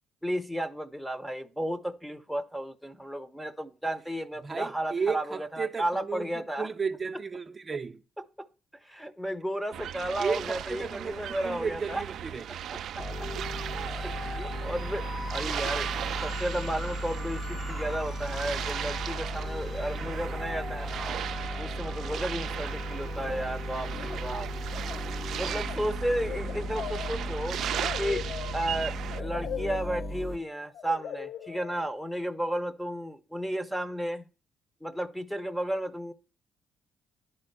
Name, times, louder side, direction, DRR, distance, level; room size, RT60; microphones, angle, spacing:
voice 1, 0.2-6.7 8.4-8.5 8.8-12.0 12.7-13.3 14.0-15.9 16.2-21.2 21.6-24.5 25.4-27.6 28.0-28.2 28.5-34.2 34.8-36.1, right 1 dB, ahead, 0.8 m, -33 dB
voice 2, 4.4-8.0 10.2-11.2 11.4-12.4, right 5 dB, 30° right, 0.6 m, -33 dB
sound 1, 9.7-29.2, right 10 dB, 70° right, 0.4 m, -37 dB
sound 2, 13.0-30.4, equal, 30° left, 1.0 m, -36 dB
sound 3, 23.2-23.6 23.9-24.4 24.6-32.2, left 9 dB, 70° left, 0.4 m, -41 dB
10.5 x 4.3 x 6.7 m
cardioid pair, 90°, 0 cm